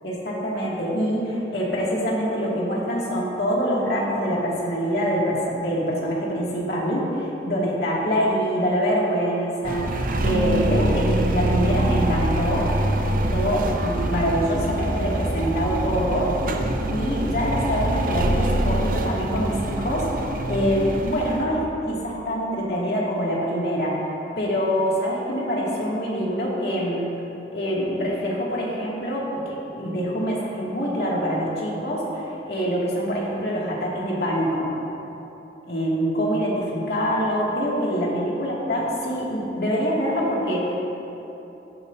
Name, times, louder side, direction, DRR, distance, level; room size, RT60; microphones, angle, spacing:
voice 1, 0.0-10.0 10.2-12.7 13.1-16.3 16.9-20.1 20.5-24.0 24.4-27.1 27.5-34.7 35.7-40.8, equal, 60° left, -5 dB, 2.3 m, -25 dB
sound 1, 9.6-21.4, right 1 dB, 50° right, 0.7 m, -25 dB
15.5 x 9.6 x 2.7 m, 3.0 s
head